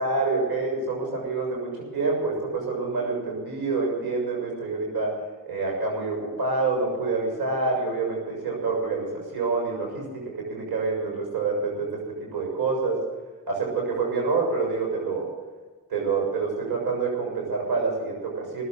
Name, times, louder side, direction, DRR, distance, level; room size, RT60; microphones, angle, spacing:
voice 1, 0.0-5.2 5.5-13.0 13.5-15.3 15.9-18.6, right 4 dB, 85° right, -1 dB, 6.9 m, -27 dB
19.0 x 8.2 x 9.0 m, 1.3 s
cardioid pair, 60°, 37 cm